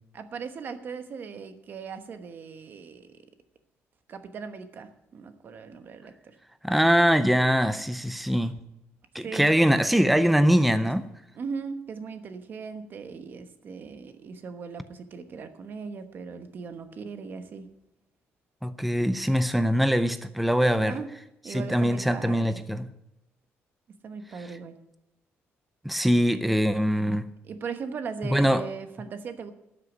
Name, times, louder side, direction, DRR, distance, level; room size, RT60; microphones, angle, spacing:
voice 1, 0.1-3.1 4.1-6.4 9.2-9.5 11.3-17.7 20.8-21.1 21.4-22.6 24.0-24.8 27.4-29.5, right 5 dB, 45° right, 1.1 m, -38 dB
voice 2, 6.6-8.6 9.1-11.1 18.6-21.0 21.5-22.9 25.8-27.3 28.3-28.7, equal, ahead, 0.5 m, -23 dB
12.5 x 6.6 x 9.3 m
cardioid pair, 160°, 5 cm